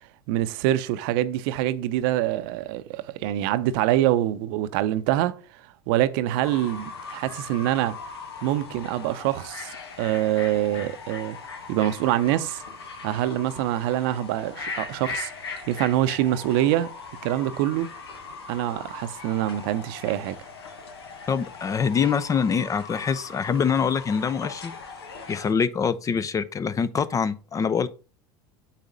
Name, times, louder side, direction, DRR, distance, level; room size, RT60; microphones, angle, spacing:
voice 1, 0.3-5.4 5.9-8.0 8.4-11.4 11.7-12.6 13.0-15.3 15.7-16.9 17.2-17.9 18.5-20.4, right 13 dB, 65° right, 0.6 m, -25 dB
Fowl / Bird, 6.4-25.5, left 4 dB, 85° left, 1.1 m, -39 dB
voice 2, 21.3-24.7 25.3-27.9, left 6 dB, 25° left, 0.5 m, -24 dB
8.2 x 4.1 x 3.9 m
hypercardioid pair, 85°, 13 cm